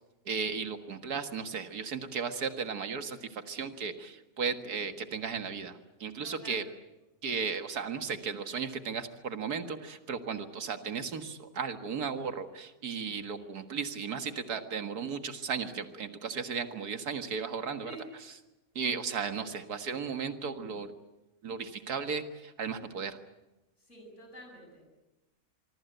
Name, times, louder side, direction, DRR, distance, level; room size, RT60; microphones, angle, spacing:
voice 1, 0.3-6.6 7.2-17.9 18.8-20.9 21.4-23.2, right 6 dB, 85° right, 8 dB, 2.1 m, -35 dB
voice 2, 6.2-6.7 17.8-18.1 23.8-25.0, right 1 dB, 50° left, 2 dB, 8.1 m, -49 dB
25.0 x 24.0 x 8.0 m, 1.0 s
omnidirectional pair, 1.6 m